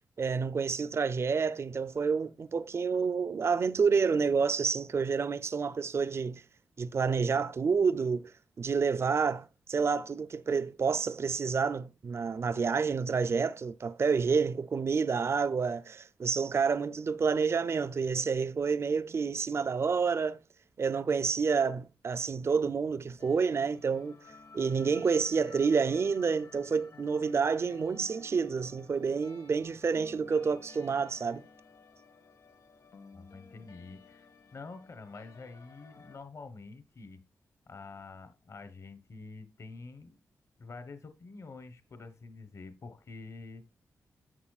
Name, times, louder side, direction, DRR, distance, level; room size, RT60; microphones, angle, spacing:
voice 1, 0.2-6.4 6.8-8.3 8.6-20.4 20.8-24.2 24.5-31.4, right 5 dB, 45° right, 0.5 m, -29 dB
sound 1, 23.2-36.2, left 4 dB, 75° left, 1.7 m, -55 dB
voice 2, 33.1-37.2 37.7-40.2 40.6-43.6, left 3 dB, 55° left, 1.1 m, -47 dB
11.0 x 7.1 x 2.4 m
cardioid pair, 85°, 6 cm